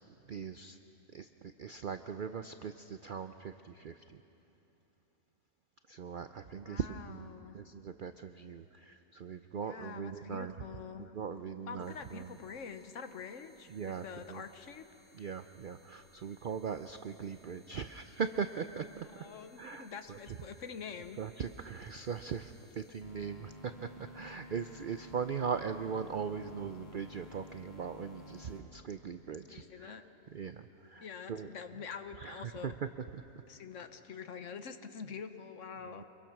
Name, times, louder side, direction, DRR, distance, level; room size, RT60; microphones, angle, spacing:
voice 1, 0.1-0.8 1.1-4.2 5.9-10.5 11.0-12.4 13.7-14.4 15.1-19.3 19.6-20.4 21.2-30.0 30.3-31.5 32.2-33.2 35.8-36.0, right 6 dB, 65° right, 9 dB, 0.5 m, -40 dB
voice 2, 6.6-7.6 9.5-11.1 11.7-13.7 14.0-14.8 19.2-21.2 29.5-30.0 31.0-32.7 33.5-36.0, left 6 dB, 60° left, 9 dB, 1.2 m, -46 dB
sound 1, 11.8-28.6, left 2 dB, 45° left, 2.6 m, -56 dB
25.5 x 22.0 x 6.0 m, 2.9 s
omnidirectional pair, 1.5 m